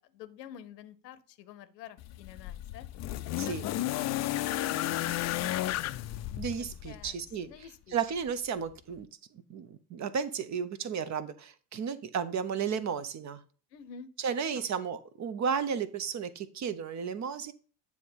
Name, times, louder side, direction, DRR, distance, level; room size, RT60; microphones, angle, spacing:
voice 1, 0.0-2.9 3.2-3.8 4.0-5.8 6.8-7.9 13.7-14.1 14.4-14.6, left 9 dB, 75° left, 13 dB, 0.8 m, -49 dB
sound 1, 2.0-7.2 8.3-8.4, left 15 dB, 35° left, 0.5 m, -33 dB
voice 2, 6.4-7.5 7.9-9.1 9.5-13.4 14.2-17.5, right 7 dB, 35° right, 14 dB, 0.7 m, -33 dB
9.2 x 3.2 x 5.3 m, 0.40 s
figure-of-eight pair, 55°, 50 cm